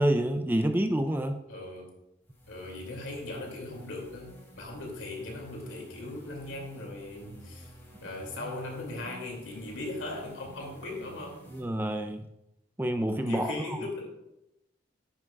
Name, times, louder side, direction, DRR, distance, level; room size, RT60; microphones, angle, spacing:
voice 1, 0.0-1.4 11.5-12.2 12.8-13.5, right 1 dB, 10° right, 7 dB, 0.4 m, -27 dB
voice 2, 1.5-1.9 2.5-7.7 8.0-11.4 13.2-14.1, left 2 dB, 85° left, 0 dB, 2.5 m, -39 dB
sound 1, 2.2-11.6, right 1 dB, 10° left, 2.1 m, -51 dB
9.9 x 9.7 x 2.3 m, 0.88 s
head